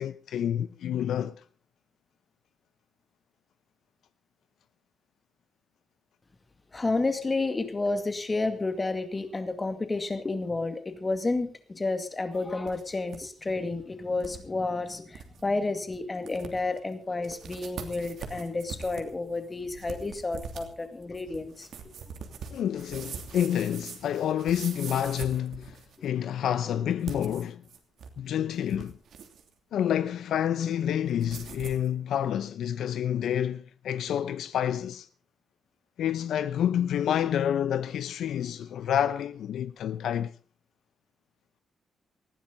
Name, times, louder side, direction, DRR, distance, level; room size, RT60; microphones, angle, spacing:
voice 1, 0.0-1.4 22.5-25.8 26.0-27.6 28.2-29.0 29.7-35.1 36.0-40.3, left 10 dB, 75° left, 0.7 m, -28 dB
voice 2, 6.7-21.7 26.7-26.8, left 3 dB, 20° left, 2.2 m, -31 dB
sound 1, 12.3-13.2 13.5-13.6 14.2-14.4 14.8-14.9 15.1-15.4 15.9-16.0 16.3-16.8 17.2-26.1 26.9-28.2 28.5-29.5 31.2-31.9, right 6 dB, 65° right, 2.9 m, -43 dB
19.5 x 15.0 x 4.0 m
cardioid pair, 140°, 0 cm